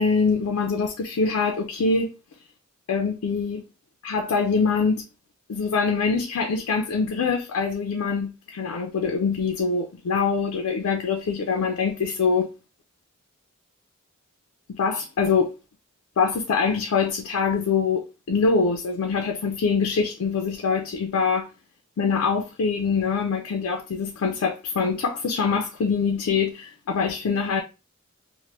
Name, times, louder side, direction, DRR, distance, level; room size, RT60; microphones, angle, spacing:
voice 1, 0.0-2.1 2.9-3.6 4.0-5.0 5.5-12.5 14.7-15.5 16.2-21.5 22.0-27.6, left 5 dB, 80° left, 0.4 m, -24 dB
3.2 x 2.1 x 2.9 m
head